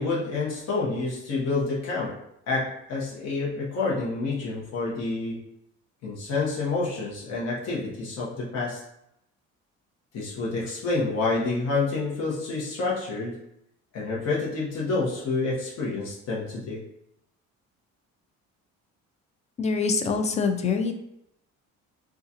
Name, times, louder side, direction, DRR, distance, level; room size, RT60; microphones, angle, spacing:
voice 1, 0.0-2.2 2.5-5.5 6.0-8.8 10.1-13.4 13.9-16.8, left 3 dB, 55° left, -5 dB, 1.0 m, -28 dB
voice 2, 19.6-20.9, left 5 dB, 25° left, 6 dB, 0.3 m, -25 dB
3.6 x 2.4 x 2.7 m, 0.79 s
cardioid pair, 120°, 31 cm